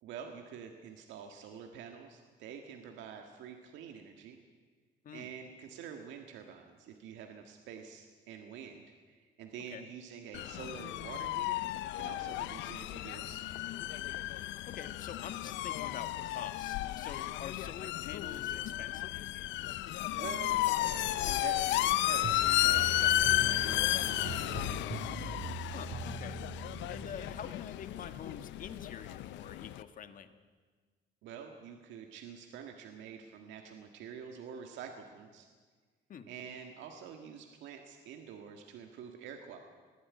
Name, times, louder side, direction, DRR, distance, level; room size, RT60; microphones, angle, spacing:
voice 1, 0.0-4.4 5.1-13.4 20.1-25.1 31.2-35.5 36.3-39.6, right 7 dB, 85° right, 4 dB, 1.8 m, -47 dB
sound 1, 10.3-29.8, left 15 dB, 80° left, 0.7 m, -33 dB
voice 2, 14.7-19.2 25.7-26.4 26.9-30.3 36.1-36.3, left 7 dB, 45° left, 9 dB, 1.5 m, -46 dB
sound 2, 22.2-27.6, right 5 dB, 45° right, 1.6 m, -42 dB
20.5 x 14.5 x 9.5 m, 1.5 s
cardioid pair, 125°, 19 cm